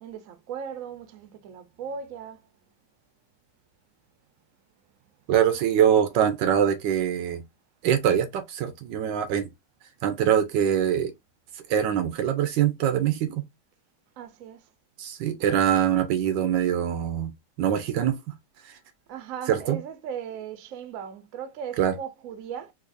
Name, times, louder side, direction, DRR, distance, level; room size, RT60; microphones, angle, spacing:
voice 1, 0.0-2.4 14.2-14.7 19.1-22.7, right 7 dB, 60° right, 0.9 m, -37 dB
voice 2, 5.3-7.4 7.8-9.5 10.0-11.1 11.7-13.4 15.0-17.3 17.6-18.2 19.5-19.8 21.8-21.9, right 9 dB, 80° right, 1.3 m, -23 dB
3.9 x 2.7 x 2.6 m
omnidirectional pair, 2.0 m